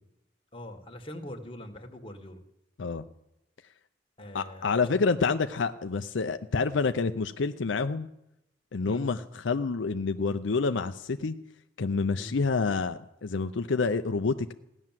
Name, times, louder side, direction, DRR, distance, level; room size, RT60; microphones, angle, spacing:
voice 1, 0.5-2.4 4.2-5.0 8.8-9.0 12.2-12.4, left 1 dB, 30° left, 3 dB, 1.7 m, -42 dB
voice 2, 4.3-8.1 8.7-11.4 11.8-14.5, left 4 dB, 75° left, 8 dB, 0.6 m, -28 dB
16.0 x 11.0 x 7.5 m, 0.84 s
head